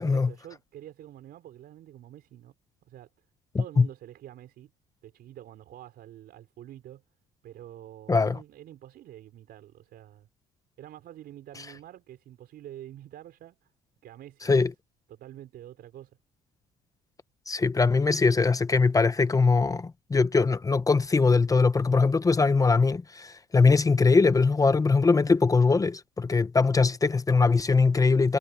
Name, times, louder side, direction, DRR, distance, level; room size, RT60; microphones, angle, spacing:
voice 1, 0.0-2.5 2.9-3.1 3.6-4.7 5.0-7.0 7.4-10.3 10.8-13.6 14.0-14.7 15.1-16.1, right 12 dB, 65° right, 4.6 m, -47 dB
voice 2, 3.5-3.9 8.1-8.4 14.4-14.7 17.5-28.4, left 4 dB, 20° left, 0.8 m, -22 dB
cardioid pair, 110°, 17 cm